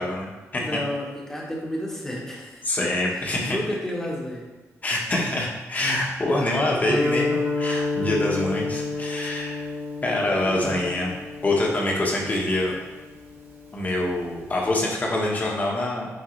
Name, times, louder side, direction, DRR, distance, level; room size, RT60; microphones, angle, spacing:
voice 1, 0.0-0.8 2.6-3.6 4.8-9.7 10.0-11.1 11.4-12.7 13.7-16.1, left 1 dB, 30° left, -2 dB, 1.2 m, -25 dB
voice 2, 0.6-2.9 3.4-4.5 10.4-10.9, left 1 dB, 10° left, -3 dB, 1.2 m, -31 dB
Guitar, 6.9-14.6, left 2 dB, 50° right, 1.9 m, -30 dB
9.2 x 3.7 x 3.2 m, 1.2 s
wide cardioid pair, 145°, 6 cm